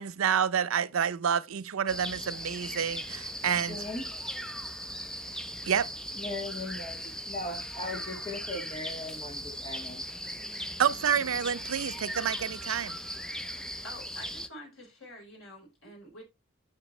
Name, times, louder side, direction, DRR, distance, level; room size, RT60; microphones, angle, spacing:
voice 1, 0.0-3.8 5.7-5.9 10.8-13.0, right 8 dB, 85° right, 0.5 m, -28 dB
sound 1, 1.9-14.5, equal, 5° left, 0.4 m, -38 dB
voice 2, 3.4-4.1 6.2-10.0, left 2 dB, 25° left, 1.7 m, -39 dB
voice 3, 13.8-16.2, left 1 dB, 85° left, 4.4 m, -47 dB
9.1 x 6.0 x 3.1 m
head